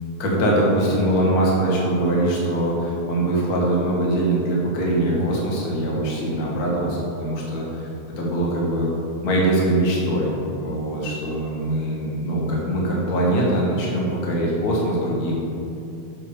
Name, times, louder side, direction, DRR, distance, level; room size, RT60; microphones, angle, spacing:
voice 1, 0.2-7.9 8.2-8.9 9.2-10.3 10.6-15.4, right 1 dB, 40° left, -4 dB, 1.4 m, -22 dB
7.1 x 6.8 x 5.5 m, 2.7 s
omnidirectional pair, 4.0 m